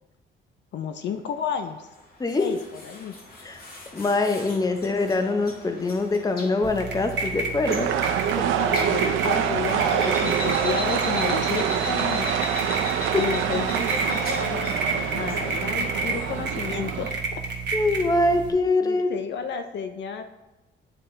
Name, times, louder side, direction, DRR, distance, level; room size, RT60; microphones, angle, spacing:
voice 1, 0.7-1.9 2.3-3.1 8.5-12.4 13.1-17.4 18.8-20.2, left 7 dB, 65° left, 7 dB, 0.5 m, -32 dB
sound 1, 1.6-16.5, left 1 dB, 50° left, 1.8 m, -39 dB
voice 2, 3.9-7.9 8.3-8.4 13.1-13.2 17.7-19.1, left 2 dB, 20° left, 6 dB, 0.7 m, -23 dB
sound 2, 6.6-18.5, right 4 dB, 65° right, 1.2 m, -31 dB
sound 3, 7.7-17.1, right 8 dB, 85° right, 0.5 m, -26 dB
8.8 x 4.2 x 3.2 m, 1.1 s
cardioid pair, 90°, 20 cm